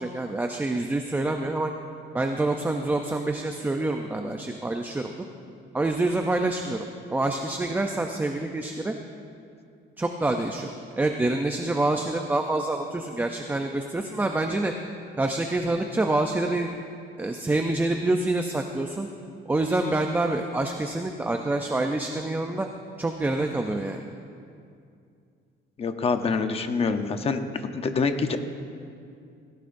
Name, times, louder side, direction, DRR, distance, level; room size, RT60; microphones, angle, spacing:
voice 1, 0.0-1.7 2.1-5.1 5.7-8.9 10.0-10.7 11.0-14.7 15.2-16.7 17.2-19.1 19.5-22.7 23.0-24.0, right 2 dB, 10° right, 4 dB, 0.4 m, -26 dB
voice 2, 25.8-27.4 27.7-28.4, left 4 dB, 30° left, 7 dB, 0.7 m, -25 dB
17.5 x 17.0 x 2.6 m, 2.4 s
cardioid pair, 170°, 21 cm